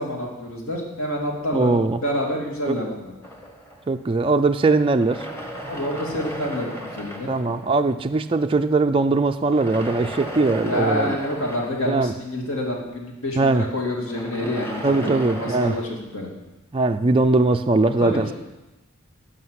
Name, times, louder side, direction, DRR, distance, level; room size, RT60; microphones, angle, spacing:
voice 1, 0.0-1.7 2.0-3.1 5.7-7.3 10.6-16.3 18.0-18.3, left 1 dB, 65° left, -1 dB, 2.8 m, -28 dB
voice 2, 1.5-2.0 2.7-2.8 3.9-5.3 7.3-11.2 11.9-12.1 13.4-13.6 14.8-15.8 16.7-18.3, right 3 dB, 25° right, 6 dB, 0.4 m, -20 dB
sound 1, 3.2-4.4 4.9-8.1 9.4-12.9 13.9-15.8, equal, 10° left, 1.5 m, -36 dB
11.5 x 6.5 x 9.4 m, 1.1 s
head